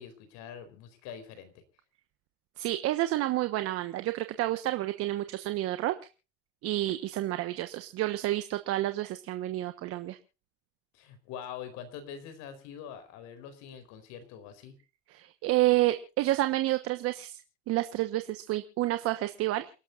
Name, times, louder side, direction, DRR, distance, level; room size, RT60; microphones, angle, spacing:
voice 1, 0.0-1.6 10.9-14.8, left 8 dB, 55° left, 11 dB, 4.3 m, -44 dB
voice 2, 2.6-5.9 6.6-10.2 15.1-17.4 17.7-19.7, right 16 dB, 45° right, 9 dB, 1.2 m, -29 dB
29.0 x 12.0 x 2.6 m, 0.33 s
cardioid pair, 160°, 33 cm